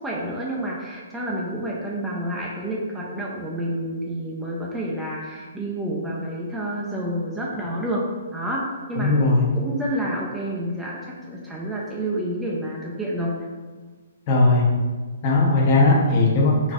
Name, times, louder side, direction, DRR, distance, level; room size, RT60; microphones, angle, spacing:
voice 1, 0.0-8.0 8.3-8.6 8.9-9.1 9.6-13.3, right 1 dB, 10° right, -4 dB, 0.4 m, -29 dB
voice 2, 9.0-9.4 14.3-14.6 15.2-16.7, left 2 dB, 40° left, -2 dB, 0.7 m, -18 dB
3.9 x 2.5 x 2.3 m, 1.4 s
hypercardioid pair, 140°, 0 cm